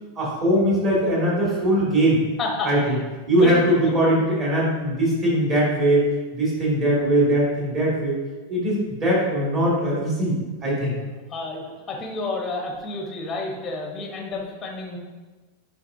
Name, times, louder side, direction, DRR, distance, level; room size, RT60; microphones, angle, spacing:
voice 1, 0.2-2.2 2.6-2.8 3.3-8.2 8.5-10.4 10.6-10.9, right 1 dB, 25° right, -6 dB, 2.2 m, -21 dB
voice 2, 2.4-3.0 3.3-3.6 3.9-4.0 11.3-15.0, left 2 dB, 15° left, 0 dB, 1.0 m, -30 dB
9.1 x 5.1 x 2.7 m, 1.3 s
supercardioid pair, 175°, 0 cm